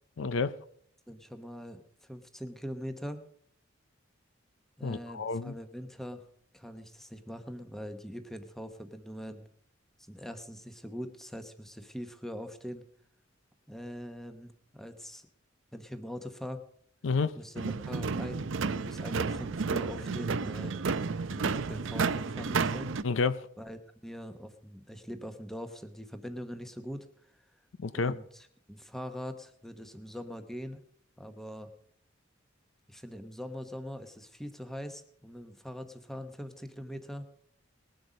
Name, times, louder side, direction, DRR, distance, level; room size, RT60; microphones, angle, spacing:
voice 1, 0.2-0.6 4.8-5.5 17.0-17.3 23.0-23.4 27.8-28.1, left 4 dB, 70° left, 15 dB, 0.5 m, -29 dB
voice 2, 1.1-3.2 4.8-6.2 6.5-9.4 10.1-12.8 13.7-15.3 15.7-16.6 17.4-22.9 23.6-27.1 27.9-30.8 31.2-31.7 32.9-37.2, equal, ahead, 8 dB, 1.0 m, -42 dB
sound 1, 17.6-23.0, right 4 dB, 75° right, 0.6 m, -31 dB
20.0 x 7.9 x 5.2 m, 0.65 s
head